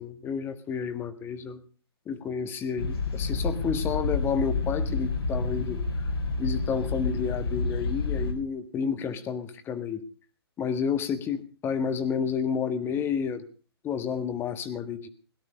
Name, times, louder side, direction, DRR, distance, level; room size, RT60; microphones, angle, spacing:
voice 1, 0.0-1.6 2.1-5.8 6.4-10.0 10.6-13.4 13.8-15.1, left 6 dB, 15° left, 10 dB, 1.5 m, -30 dB
sound 1, 2.8-8.3, left 3 dB, 70° left, 4.1 m, -29 dB
17.5 x 12.0 x 5.4 m, 0.38 s
figure-of-eight pair, 130°, 13 cm